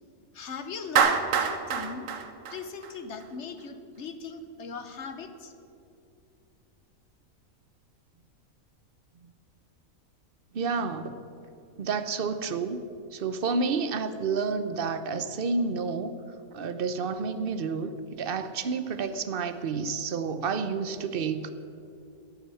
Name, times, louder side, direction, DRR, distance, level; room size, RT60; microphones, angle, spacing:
voice 1, 0.3-2.1 2.5-5.5, left 5 dB, 55° left, 9 dB, 1.3 m, -39 dB
Clapping, 1.0-3.3, right 6 dB, 65° right, 1.3 m, -25 dB
voice 2, 10.5-11.1 11.8-12.8 13.1-16.1 16.5-21.5, right 4 dB, 45° right, 11 dB, 0.9 m, -30 dB
14.5 x 8.7 x 8.4 m, 2.7 s
omnidirectional pair, 1.5 m